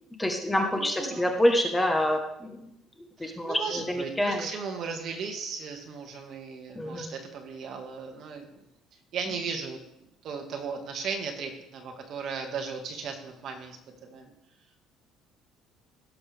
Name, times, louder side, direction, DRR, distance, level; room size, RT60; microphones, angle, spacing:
voice 1, 0.2-2.7 3.2-4.5 6.7-7.1, left 1 dB, 10° left, 3 dB, 1.1 m, -27 dB
voice 2, 0.7-1.3 3.2-8.6 9.1-9.8 10.2-14.3, right 5 dB, 50° right, 3 dB, 1.7 m, -36 dB
16.5 x 6.9 x 3.4 m, 0.84 s
cardioid pair, 150°, 0 cm